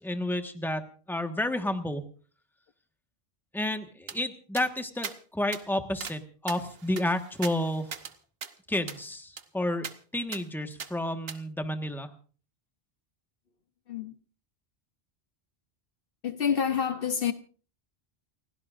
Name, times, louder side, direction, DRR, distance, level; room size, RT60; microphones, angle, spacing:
voice 1, 0.0-2.0 3.5-7.9 8.7-9.9 10.1-12.1, left 1 dB, ahead, 1.4 m, -31 dB
sound 1, 4.1-4.2 4.6-4.7 5.0-5.2 5.5-5.6 6.0-6.2 6.5-8.1 8.4-8.5 8.9-9.0 9.4-9.5 9.8-10.0 10.3-10.4 10.8-10.9 11.3-11.4, right 6 dB, 65° right, 1.2 m, -39 dB
voice 2, 16.2-17.3, left 7 dB, 60° left, 1.0 m, -28 dB
29.5 x 16.5 x 2.5 m
omnidirectional pair, 1.1 m